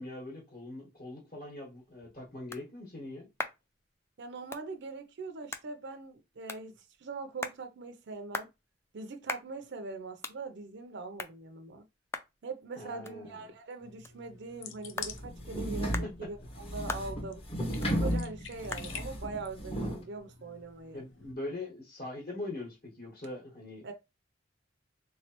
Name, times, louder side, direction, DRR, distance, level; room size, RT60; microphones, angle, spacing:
voice 1, 0.0-3.3 12.8-13.4 16.0-16.1 20.9-23.8, left 2 dB, 50° left, 1.5 m, -42 dB
sound 1, 1.6-20.9, left 3 dB, 15° left, 0.3 m, -46 dB
voice 2, 4.2-8.5 8.9-11.8 12.4-17.4 17.8-21.0 23.8-23.9, right 3 dB, 65° right, 0.5 m, -42 dB
sound 2, 13.8-21.3, left 7 dB, 85° left, 0.6 m, -49 dB
sound 3, 15.0-20.0, equal, 30° left, 0.9 m, -34 dB
3.5 x 3.1 x 2.9 m
head